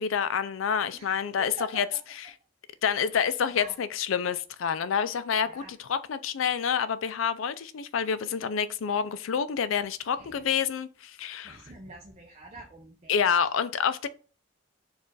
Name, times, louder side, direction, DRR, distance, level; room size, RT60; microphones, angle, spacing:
voice 1, 0.0-1.9 2.8-11.6 13.1-14.1, left 7 dB, 80° left, 0.4 m, -28 dB
voice 2, 0.9-1.8 3.1-3.2 3.5-3.7 5.5-5.7 10.1-10.4 11.4-13.3, right 2 dB, 35° right, 0.5 m, -46 dB
4.5 x 2.4 x 4.5 m
head